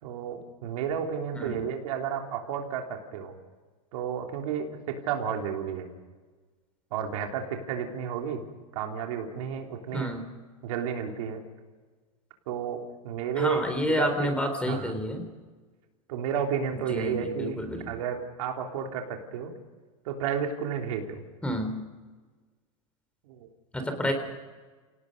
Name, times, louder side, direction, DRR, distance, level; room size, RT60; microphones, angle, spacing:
voice 1, 0.0-3.3 3.9-5.9 6.9-8.4 8.7-10.1 10.6-11.4 12.5-12.8 13.0-14.3 14.6-14.9 16.1-17.6 17.8-19.5 20.0-21.2 23.3-23.5 24.0-24.1, right 7 dB, 70° right, 2 dB, 3.4 m, -32 dB
voice 2, 9.9-10.2 13.4-15.2 16.9-17.8 21.4-21.8 23.7-24.1, left 1 dB, 5° left, 6 dB, 3.7 m, -29 dB
29.0 x 18.0 x 5.4 m, 1.4 s
supercardioid pair, 120°, 18 cm